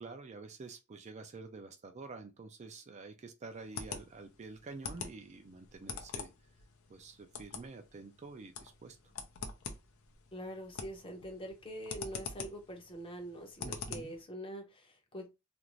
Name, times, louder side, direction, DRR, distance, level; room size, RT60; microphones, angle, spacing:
voice 1, 0.0-6.3 6.9-9.0 13.6-14.1, right 3 dB, 35° right, 0.4 m, -48 dB
sound 1, 3.5-14.2, left 5 dB, 75° left, 0.6 m, -46 dB
voice 2, 10.3-15.3, equal, 25° left, 0.7 m, -44 dB
2.5 x 2.5 x 3.0 m
head